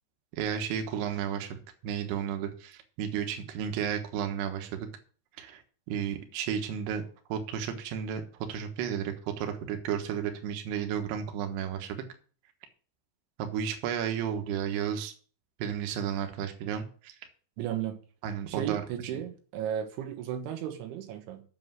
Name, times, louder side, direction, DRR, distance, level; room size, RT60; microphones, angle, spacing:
voice 1, 0.4-4.9 5.4-5.6 5.9-7.0 7.3-8.2 8.5-12.0 13.4-15.1 15.6-17.1 18.2-18.9, right 8 dB, 70° right, 6 dB, 3.2 m, -33 dB
voice 2, 17.6-18.0 18.5-21.4, right 10 dB, 90° right, 5 dB, 3.8 m, -34 dB
8.1 x 6.7 x 7.8 m, 0.41 s
omnidirectional pair, 5.3 m